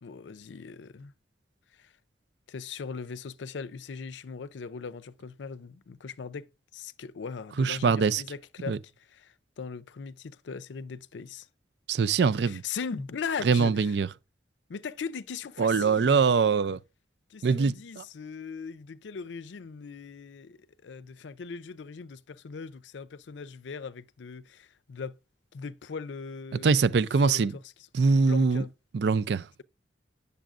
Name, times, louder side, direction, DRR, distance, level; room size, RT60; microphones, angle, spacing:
voice 1, 0.0-1.1 1.7-1.9 2.5-8.8 9.1-11.5 12.4-14.0 14.7-16.3 17.3-25.2 25.5-27.4 28.2-28.7, left 5 dB, 90° left, 0.5 m, -39 dB
voice 2, 7.6-8.2 8.7-8.8 11.9-12.6 13.4-14.1 15.6-16.8 17.4-18.0 26.6-27.5 27.9-28.6 28.9-29.5, right 5 dB, 65° right, 0.4 m, -23 dB
10.5 x 6.9 x 2.4 m
head